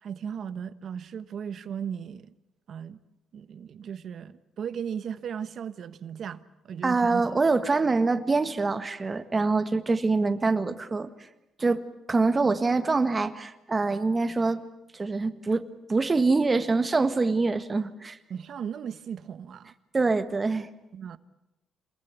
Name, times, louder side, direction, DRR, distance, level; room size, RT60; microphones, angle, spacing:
voice 1, 0.0-2.3 2.7-3.0 3.3-7.4 18.3-19.7 20.9-21.2, right 7 dB, 60° right, 1.2 m, -36 dB
voice 2, 6.8-11.3 11.6-14.6 14.9-15.6 15.9-18.2 19.9-20.7, right 3 dB, 25° right, 1.7 m, -25 dB
27.0 x 21.0 x 8.4 m
cardioid pair, 90°, 0 cm